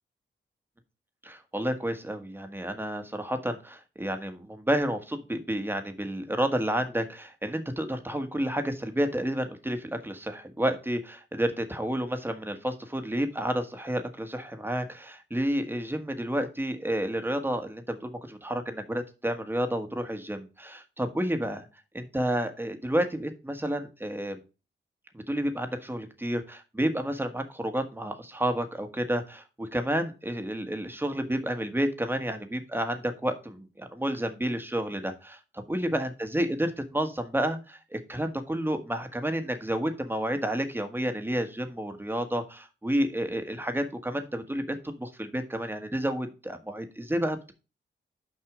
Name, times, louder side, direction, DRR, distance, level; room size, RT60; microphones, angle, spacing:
voice 1, 1.2-21.7 21.9-24.4 25.1-47.5, right 1 dB, 10° right, 7 dB, 1.5 m, -30 dB
6.2 x 5.3 x 5.0 m, 0.31 s
cardioid pair, 70°, 20 cm